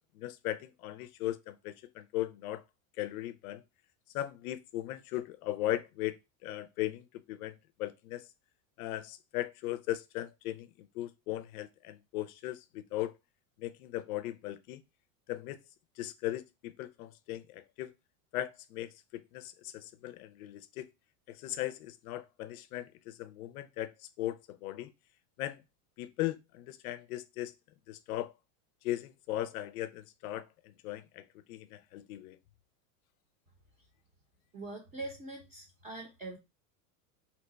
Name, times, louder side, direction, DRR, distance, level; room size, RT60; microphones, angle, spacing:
voice 1, 0.2-2.6 3.0-3.6 4.1-8.3 8.8-13.1 13.6-14.8 15.3-15.6 16.0-17.9 18.3-20.9 21.3-24.9 25.4-25.6 26.0-27.5 27.9-28.3 28.8-32.4, left 14 dB, 90° left, 0.5 m, -38 dB
voice 2, 34.5-36.4, right 2 dB, 20° right, 0.6 m, -43 dB
2.8 x 2.2 x 3.9 m
supercardioid pair, 155°, 42 cm